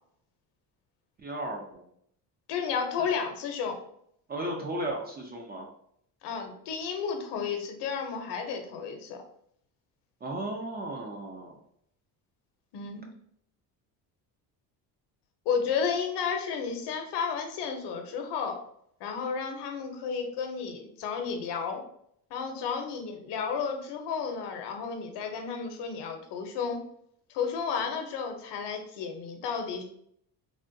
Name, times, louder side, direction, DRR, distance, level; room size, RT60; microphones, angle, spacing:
voice 1, 1.2-1.9 4.3-5.7 10.2-11.6, right 1 dB, 25° right, 1 dB, 0.3 m, -35 dB
voice 2, 2.5-3.8 6.2-9.2 12.7-13.1 15.5-18.6 19.0-21.8 22.3-26.8 27.3-29.8, left 6 dB, 75° left, 4 dB, 0.7 m, -32 dB
3.5 x 2.2 x 2.5 m, 0.68 s
cardioid pair, 135°, 41 cm